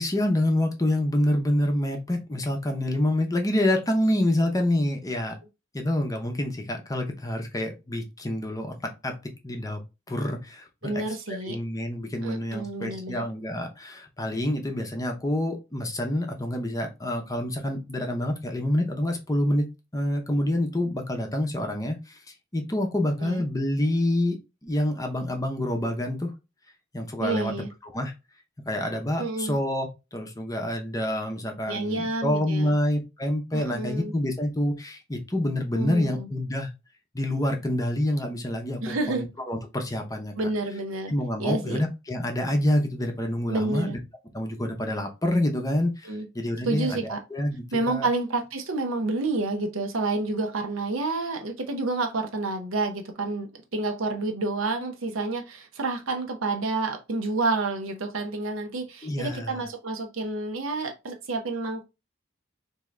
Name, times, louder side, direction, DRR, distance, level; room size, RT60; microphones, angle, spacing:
voice 1, 0.0-5.4 5.7-8.7 9.0-9.1 9.4-9.8 10.1-11.0 11.5-19.7 19.9-22.2 22.5-26.3 26.9-27.5 27.8-28.1 28.7-36.7 37.1-40.3 41.1-44.0 44.3-48.1 59.0-59.6, left 1 dB, 15° left, 0.7 m, -27 dB
voice 2, 10.8-11.6 12.2-13.2 23.2-23.4 27.2-27.7 29.2-29.6 31.7-32.7 33.5-34.1 35.7-36.3 38.8-39.3 40.3-41.1 41.4-41.8 43.5-43.9 46.0-46.3 46.6-47.2 47.7-61.8, right 2 dB, 70° right, 0.7 m, -29 dB
3.6 x 2.7 x 3.1 m
head